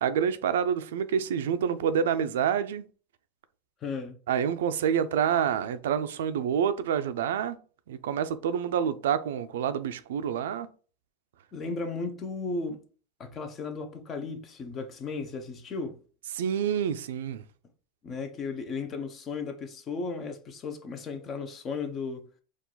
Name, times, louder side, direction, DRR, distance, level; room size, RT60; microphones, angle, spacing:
voice 1, 0.0-2.8 4.3-7.6 7.9-10.7 16.4-17.4, right 8 dB, 85° right, 0.5 m, -27 dB
voice 2, 3.8-4.2 11.5-12.8 13.2-16.0 18.0-22.3, left 4 dB, 30° left, 0.8 m, -35 dB
4.7 x 2.5 x 3.9 m
supercardioid pair, 130°, 0 cm